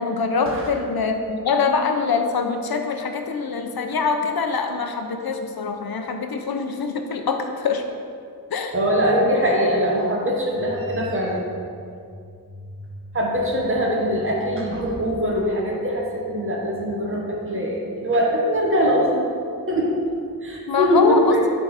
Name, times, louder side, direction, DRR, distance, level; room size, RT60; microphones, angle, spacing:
voice 1, 0.0-7.8 8.5-8.7 20.7-21.4, left 5 dB, 70° left, 5 dB, 0.9 m, -24 dB
voice 2, 8.7-11.4 13.1-19.3 19.7-20.0 20.4-21.4, equal, 35° right, -3 dB, 1.5 m, -22 dB
sound 1, 10.6-17.4, left 1 dB, 40° left, 1.4 m, -43 dB
11.5 x 4.0 x 4.9 m, 2.4 s
wide cardioid pair, 85°, 38 cm